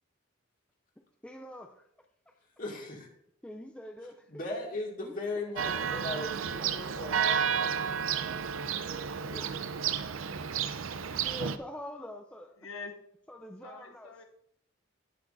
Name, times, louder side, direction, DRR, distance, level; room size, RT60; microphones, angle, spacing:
voice 1, 1.2-1.9 2.3-2.4 3.4-4.3 5.0-5.8 9.4-9.5 11.2-12.5 13.3-14.1, left 1 dB, 5° left, 3 dB, 0.4 m, -45 dB
voice 2, 2.6-3.1 4.3-8.0 9.3-9.5, left 2 dB, 45° left, -1 dB, 2.1 m, -38 dB
Church bell, 5.6-11.6, right 7 dB, 80° right, 0.5 m, -31 dB
voice 3, 12.6-13.0 13.6-14.2, left 4 dB, 80° left, 4 dB, 0.8 m, -44 dB
18.5 x 6.1 x 2.6 m, 0.72 s
head